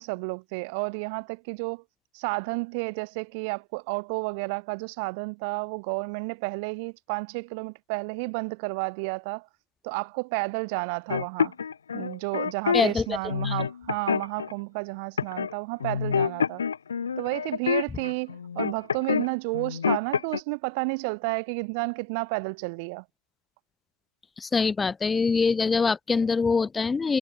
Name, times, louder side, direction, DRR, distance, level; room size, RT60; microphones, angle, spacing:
voice 1, 0.0-1.8 2.1-9.5 9.8-11.5 11.9-16.6 17.2-23.0, right 31 dB, 45° right, 3.4 m, -31 dB
sound 1, 11.1-12.8 13.3-14.5 15.2-15.5 15.8-19.3 19.5-20.4, left 6 dB, 80° left, 1.5 m, -27 dB
voice 2, 12.7-13.2 13.4-13.5 24.4-27.2, left 4 dB, 10° left, 1.1 m, -24 dB
hypercardioid pair, 120°, 0 cm